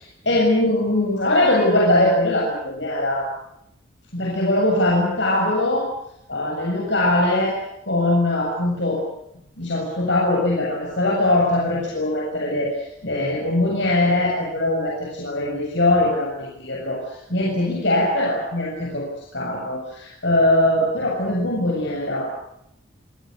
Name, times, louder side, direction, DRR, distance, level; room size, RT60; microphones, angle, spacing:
voice 1, 0.2-3.3 4.1-5.9 6.3-7.5 7.9-9.0 9.6-19.0 19.3-22.3, left 1 dB, 65° left, -3 dB, 7.4 m, -21 dB
27.0 x 18.0 x 9.8 m, 0.77 s
head